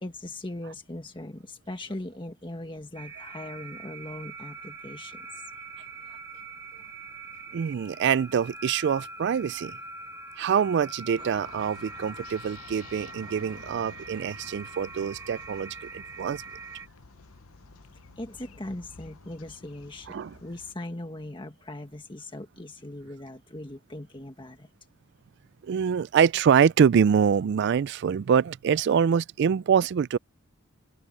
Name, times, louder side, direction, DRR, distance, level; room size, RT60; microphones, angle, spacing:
voice 1, 0.0-5.3 18.2-24.7, left 1 dB, 25° left, 1.5 m, -39 dB
sound 1, 3.0-16.9, right 3 dB, 15° right, 2.3 m, -43 dB
voice 2, 7.5-9.8 10.4-16.4 20.1-20.3 25.6-30.2, right 7 dB, 55° right, 0.3 m, -24 dB
sound 2, 11.2-20.8, left 5 dB, 85° left, 0.9 m, -50 dB
open air
head